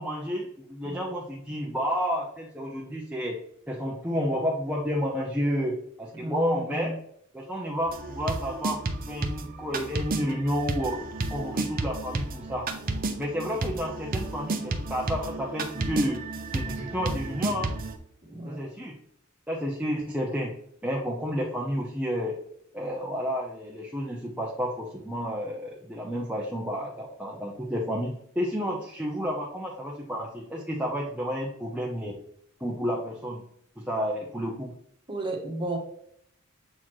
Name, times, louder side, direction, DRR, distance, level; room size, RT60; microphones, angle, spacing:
voice 1, 0.0-3.4 3.7-6.9 7.3-11.0 11.3-12.7 13.2-16.2 16.5-17.7 18.5-18.9 19.5-20.5 20.8-22.3 22.7-32.1 32.6-33.4 33.8-34.7, equal, 5° right, -4 dB, 0.7 m, -30 dB
voice 2, 6.1-7.0 18.3-18.6 35.1-35.8, right 1 dB, 25° right, 0 dB, 1.3 m, -33 dB
sound 1, 7.9-18.0, right 2 dB, 40° right, 0.7 m, -32 dB
7.4 x 4.1 x 3.1 m, 0.68 s
head